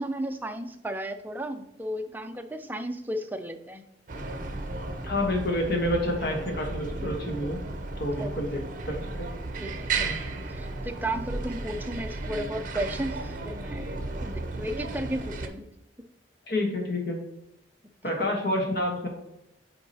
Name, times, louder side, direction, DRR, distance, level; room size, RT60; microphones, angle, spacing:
voice 1, 0.0-3.8 8.1-8.3 9.6-10.2 10.5-15.7 18.1-18.2, right 1 dB, 10° right, 6 dB, 0.4 m, -34 dB
sound 1, 4.1-15.5, right 3 dB, 45° right, 0.7 m, -34 dB
voice 2, 5.0-7.6 8.0-8.6 8.9-9.3 10.0-10.2 16.5-17.2 18.0-19.1, left 1 dB, 60° left, 1 dB, 1.2 m, -28 dB
8.2 x 4.6 x 2.8 m, 0.87 s
head